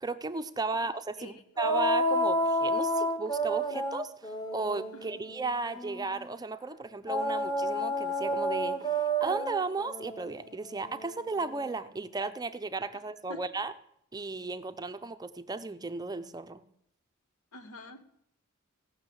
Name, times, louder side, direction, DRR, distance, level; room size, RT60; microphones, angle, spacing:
voice 1, 0.0-13.7 14.1-16.6, right 3 dB, 20° right, 10 dB, 0.5 m, -35 dB
sound 1, 1.6-6.2 7.1-11.8, right 1 dB, 20° left, 1.1 m, -31 dB
voice 2, 17.5-18.0, left 2 dB, 80° left, 9 dB, 1.2 m, -46 dB
16.0 x 6.5 x 7.8 m, 0.75 s
head